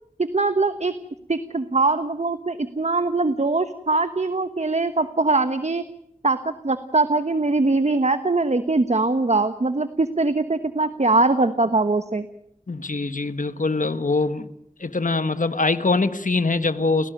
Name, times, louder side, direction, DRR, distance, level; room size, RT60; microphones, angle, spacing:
voice 1, 0.2-1.0 1.3-5.8 6.2-12.3, right 3 dB, 55° right, 11 dB, 1.2 m, -22 dB
voice 2, 12.7-14.5 14.8-17.1, left 3 dB, 75° left, 12 dB, 1.4 m, -23 dB
30.0 x 18.0 x 9.0 m, 0.77 s
wide cardioid pair, 50°, 14 cm